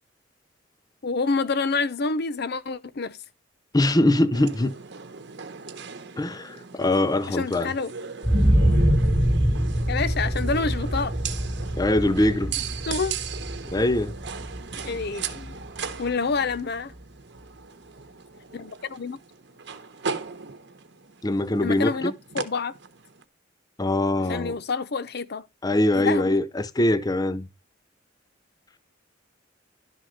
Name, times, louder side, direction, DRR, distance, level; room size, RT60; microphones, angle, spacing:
voice 1, 1.0-3.2 7.3-7.9 9.9-11.1 12.7-13.2 14.7-15.7 16.0-16.9 18.5-19.2 21.6-22.7 24.2-25.5 25.9-26.4, left 4 dB, 55° left, 0.7 m, -28 dB
voice 2, 3.7-4.7 6.2-7.7 11.8-12.5 13.7-14.1 21.2-22.1 23.8-24.6 25.6-27.5, left 1 dB, 20° left, 0.6 m, -22 dB
sound 1, 4.3-23.2, right 6 dB, 65° right, 1.1 m, -38 dB
sound 2, 8.2-16.1 16.5-16.6, equal, 5° right, 1.0 m, -24 dB
11.5 x 4.1 x 6.4 m
head